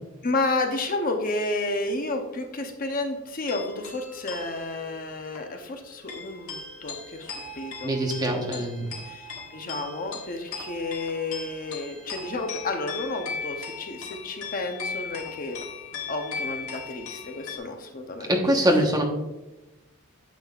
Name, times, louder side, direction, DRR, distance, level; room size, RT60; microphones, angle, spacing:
voice 1, 0.2-7.9 9.0-9.3 9.5-15.6 16.1-18.3 18.6-18.7, left 2 dB, 40° left, 4 dB, 0.8 m, -31 dB
sound 1, 3.5-17.6, left 5 dB, 75° left, 1.7 m, -38 dB
voice 2, 7.8-8.9 18.3-19.0, right 1 dB, 15° right, 1 dB, 1.1 m, -23 dB
9.2 x 7.3 x 2.4 m, 1.0 s
head